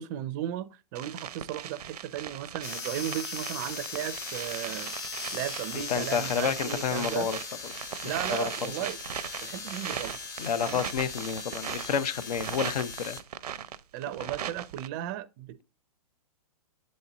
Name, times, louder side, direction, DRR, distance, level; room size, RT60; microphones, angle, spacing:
voice 1, 0.0-4.9 5.3-7.3 8.0-9.0 9.4-10.2 10.6-10.9 13.9-15.6, right 12 dB, 30° right, 0.4 m, -35 dB
sound 1, 0.9-14.9, right 9 dB, 80° right, 0.6 m, -39 dB
sound 2, 2.6-13.2, left 5 dB, 20° left, 0.7 m, -39 dB
voice 2, 5.7-7.4 8.3-8.7 10.4-13.2, left 7 dB, 75° left, 0.7 m, -30 dB
7.7 x 4.2 x 3.9 m
hypercardioid pair, 145°, 20 cm